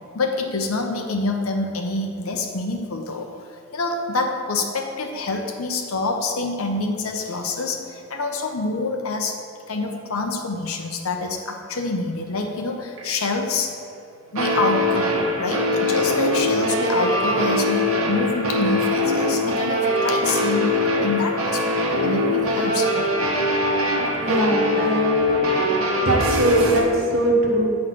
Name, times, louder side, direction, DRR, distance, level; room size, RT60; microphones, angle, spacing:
voice 1, 0.1-9.4 9.7-13.7 14.3-20.8 21.0-23.1, left 3 dB, 85° left, 3 dB, 0.8 m, -26 dB
sound 1, 13.0-13.1 14.4-26.8, left 1 dB, 85° right, 1.0 m, -22 dB
voice 2, 24.2-27.7, equal, 65° right, -1 dB, 1.2 m, -22 dB
7.7 x 3.3 x 5.8 m, 2.5 s
head